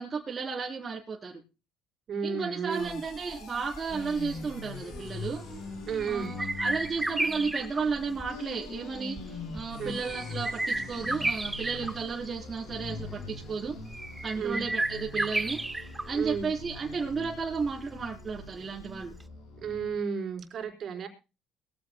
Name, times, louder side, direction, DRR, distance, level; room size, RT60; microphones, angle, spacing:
voice 1, 0.0-1.4 2.2-5.4 6.1-13.8 14.2-15.6 16.0-19.1, right 5 dB, 30° right, -3 dB, 3.7 m, -33 dB
voice 2, 2.1-3.0 5.9-6.3 9.8-9.9 14.3-14.6 16.1-16.5 19.6-21.1, right 6 dB, 55° right, 4 dB, 4.5 m, -32 dB
sound 1, 2.7-20.0, left 3 dB, 70° left, 6.9 m, -43 dB
sound 2, 2.8-19.2, right 2 dB, 15° right, 1.0 m, -35 dB
22.0 x 15.0 x 2.3 m, 0.31 s
supercardioid pair, 70°, 0 cm